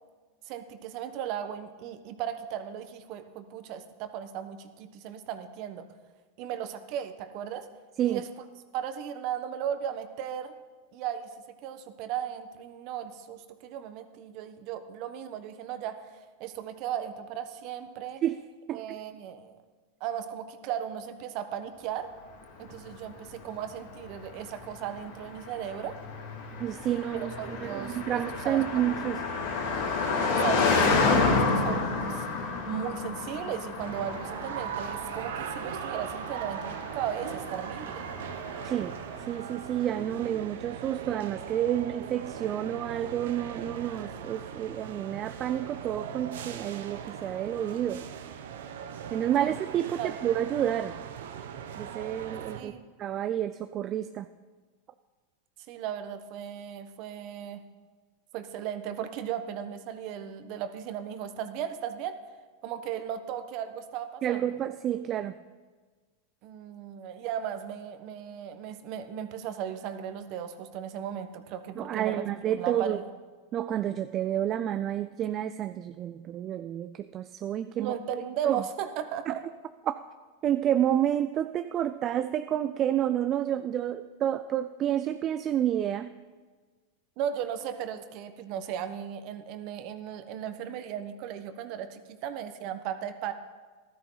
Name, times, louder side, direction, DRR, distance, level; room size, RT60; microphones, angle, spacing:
voice 1, 0.4-5.8 6.4-7.7 8.0-8.3 8.7-10.6 10.9-11.3 11.6-18.2 18.7-19.6 20.0-22.1 22.6-26.0 27.1-28.0 28.4-28.6 30.3-32.2 32.7-38.1 49.4-49.5 50.0-50.2 52.5-52.8 55.7-57.6 58.3-62.2 62.6-64.4 66.4-72.2 72.6-73.0 77.8-79.4 87.2-93.3, right 9 dB, 55° right, 9 dB, 1.2 m, -36 dB
Car passing by, 22.6-39.1, left 4 dB, 70° left, 2.6 m, -30 dB
voice 2, 26.6-29.2 38.6-48.1 49.1-51.0 51.8-52.7 53.0-54.3 64.2-65.3 71.8-73.0 73.5-77.9 78.4-78.6 79.3-79.4 79.9-80.0 80.4-86.1, right 11 dB, 35° right, 10 dB, 0.4 m, -29 dB
sound 1, 33.8-52.6, right 8 dB, 75° right, 0.9 m, -39 dB
14.5 x 13.0 x 4.0 m, 1.4 s
hypercardioid pair, 105°, 0 cm